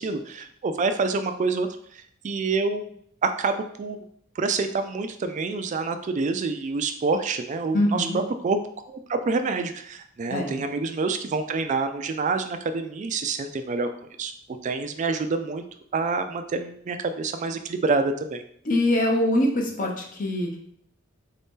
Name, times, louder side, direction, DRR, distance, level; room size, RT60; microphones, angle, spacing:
voice 1, 0.0-1.7 1.9-2.9 3.2-4.1 4.4-8.6 8.9-13.9 14.2-14.3 14.6-15.6 15.9-18.4, right 4 dB, 35° right, 8 dB, 0.3 m, -27 dB
voice 2, 7.7-8.2 10.3-10.6 18.6-20.6, left 1 dB, 40° left, 0 dB, 0.7 m, -23 dB
3.9 x 2.7 x 3.6 m, 0.66 s
head